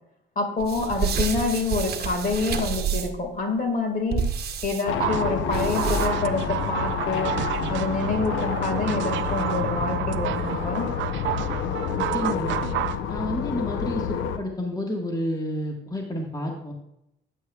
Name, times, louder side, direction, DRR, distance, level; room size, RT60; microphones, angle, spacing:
voice 1, 0.4-4.2 4.6-7.3 7.7-10.9, left 3 dB, 45° left, 4 dB, 1.8 m, -27 dB
sound 1, 0.6-3.3 4.1-4.8 5.5-6.3, right 6 dB, 55° right, 1.0 m, -28 dB
sound 2, 4.9-14.4, left 7 dB, 85° left, 0.8 m, -29 dB
sound 3, 5.0-13.0, right 13 dB, 70° right, 0.4 m, -30 dB
voice 2, 11.9-12.6 13.1-14.0 14.4-16.7, left 1 dB, 20° left, 0 dB, 1.5 m, -30 dB
9.2 x 8.4 x 2.3 m, 0.82 s
cardioid pair, 90°, 20 cm